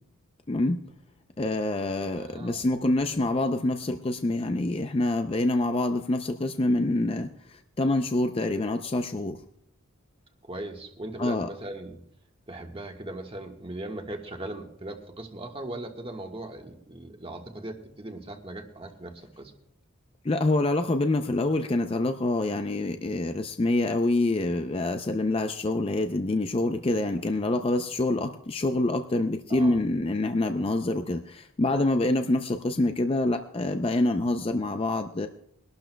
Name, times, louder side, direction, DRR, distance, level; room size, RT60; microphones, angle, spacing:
voice 1, 0.5-0.8 1.4-9.4 11.2-11.5 20.2-35.3, left 2 dB, 25° left, 7 dB, 0.4 m, -26 dB
voice 2, 2.1-2.6 10.4-12.0 12.5-19.5 29.5-29.9, right 1 dB, 25° right, 3 dB, 1.4 m, -39 dB
23.0 x 12.0 x 2.2 m, 0.73 s
head